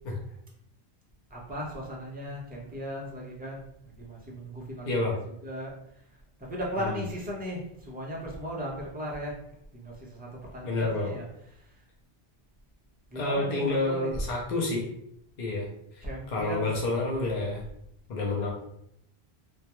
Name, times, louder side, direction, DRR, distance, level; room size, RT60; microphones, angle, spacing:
voice 1, 1.3-5.0 5.4-5.7 6.4-9.3 9.7-11.3 13.1-14.1 16.0-16.7 18.3-18.5, equal, 15° right, -3 dB, 0.4 m, -37 dB
voice 2, 4.8-5.1 6.8-7.0 10.6-11.1 13.1-14.9 15.4-15.7 15.9-17.6 18.1-18.5, left 2 dB, 55° left, -3 dB, 0.6 m, -29 dB
2.2 x 2.2 x 2.9 m, 0.75 s
omnidirectional pair, 1.0 m